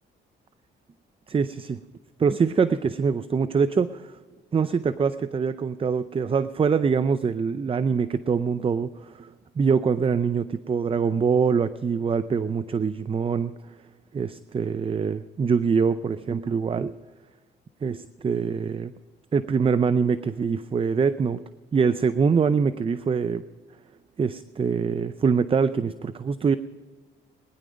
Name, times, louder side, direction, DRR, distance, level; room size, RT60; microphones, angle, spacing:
voice 1, 1.3-1.8 2.2-4.1 4.5-9.3 9.6-13.5 14.1-16.9 17.8-18.9 19.3-21.4 21.7-23.4 24.2-26.6, right 5 dB, 25° right, 14 dB, 0.5 m, -24 dB
20.0 x 10.5 x 5.2 m, 1.4 s
cardioid pair, 90°, 20 cm